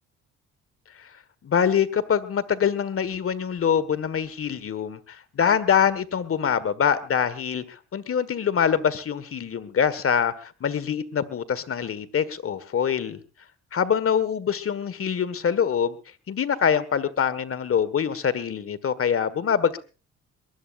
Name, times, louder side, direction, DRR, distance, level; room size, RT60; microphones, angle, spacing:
voice 1, 1.4-13.2 13.7-16.0 16.3-19.8, left 7 dB, 50° left, 1.6 m, -24 dB
22.5 x 19.5 x 2.5 m
cardioid pair, 90°, 30 cm